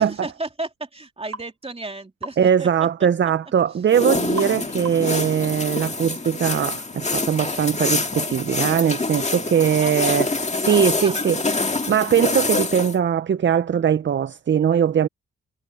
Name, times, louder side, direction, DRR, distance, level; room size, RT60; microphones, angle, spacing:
voice 1, 0.0-2.7 9.8-10.2 10.7-11.4, right 2 dB, 20° right, 2.9 m, -34 dB
sound 1, 1.3-1.5 2.2-2.4 4.4-4.6 4.9-5.2, right 3 dB, 60° right, 1.3 m, -34 dB
voice 2, 2.4-11.4 11.9-15.1, right 8 dB, 40° right, 0.5 m, -21 dB
sound 2, 3.9-13.0, left 3 dB, 25° left, 2.0 m, -26 dB
cardioid pair, 75°, 29 cm